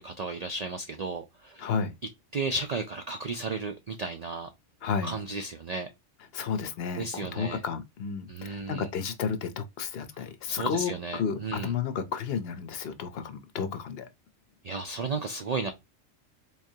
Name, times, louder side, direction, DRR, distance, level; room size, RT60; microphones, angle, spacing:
voice 1, 0.0-1.7 2.3-4.5 5.0-5.9 7.0-7.6 8.3-8.9 10.1-11.7 14.6-15.7, right 3 dB, 85° right, 0.3 m, -34 dB
voice 2, 1.6-1.9 4.8-5.1 6.3-14.1, left 6 dB, 60° left, 0.8 m, -32 dB
3.6 x 3.2 x 2.7 m
omnidirectional pair, 1.3 m